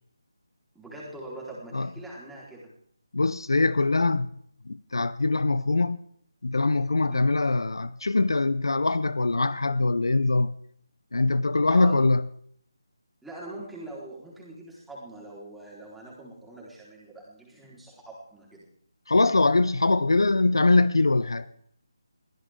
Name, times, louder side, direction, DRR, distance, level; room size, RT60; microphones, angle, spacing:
voice 1, 0.7-2.7 7.0-7.2 11.7-12.0 13.2-18.6, right 1 dB, 5° right, 4.2 m, -43 dB
voice 2, 3.1-4.3 4.7-6.0 6.4-10.6 11.1-12.3 19.1-21.5, left 3 dB, 75° left, 0.8 m, -23 dB
22.5 x 16.0 x 3.7 m
figure-of-eight pair, 160°, 2 cm